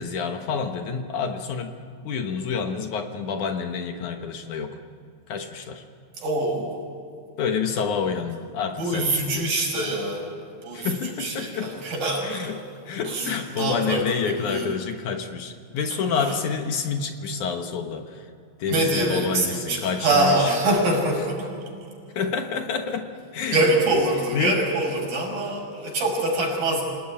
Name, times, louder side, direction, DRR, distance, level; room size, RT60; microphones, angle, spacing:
voice 1, 0.0-1.7 2.0-4.7 5.3-5.8 7.4-9.5 10.7-11.7 12.2-12.6 12.9-18.2 18.6-20.3 22.2-23.1 23.3-23.6 23.9-24.0 24.3-24.6, left 6 dB, 65° left, 5 dB, 2.5 m, -28 dB
voice 2, 6.2-6.8 8.8-10.3 10.6-12.5 13.0-14.8 15.9-16.4 18.7-21.5 23.5-26.8, right 2 dB, 70° right, 0 dB, 7.7 m, -24 dB
27.5 x 18.0 x 9.9 m, 2.3 s
omnidirectional pair, 4.1 m